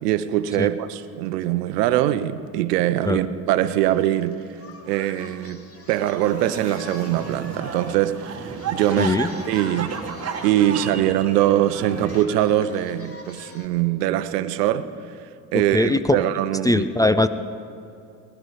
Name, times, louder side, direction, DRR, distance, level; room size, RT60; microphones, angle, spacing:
voice 1, 0.0-4.5 4.9-9.2 9.5-10.0 10.4-14.9 15.2-16.9, right 12 dB, 80° right, 13 dB, 0.8 m, -22 dB
Singing, 3.7-13.7, left 2 dB, 30° left, 2.1 m, -44 dB
sound 1, 6.2-12.2, right 5 dB, 30° right, 1.6 m, -33 dB
voice 2, 9.0-9.3 15.7-16.2 16.6-17.3, left 2 dB, 10° left, 12 dB, 0.4 m, -20 dB
20.0 x 11.0 x 5.0 m, 2.6 s
hypercardioid pair, 70°, 47 cm